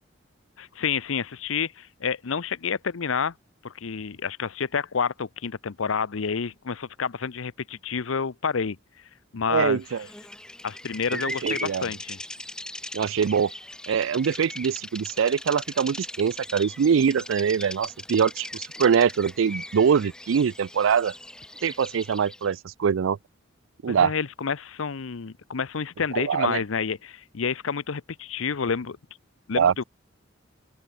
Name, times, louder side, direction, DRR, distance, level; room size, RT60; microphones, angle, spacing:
voice 1, 0.6-3.3 3.6-8.8 9.3-9.8 10.6-12.2 23.9-29.0 29.5-29.8, left 6 dB, 85° left, 0.7 m, -29 dB
voice 2, 9.5-10.1 11.1-11.9 12.9-13.5 13.9-21.1 21.6-23.2 23.8-24.1 26.1-26.6 29.6-29.7, right 7 dB, 75° right, 0.4 m, -23 dB
Bird vocalization bird call bird song, 9.9-22.5, left 1 dB, 5° left, 0.7 m, -39 dB
open air
head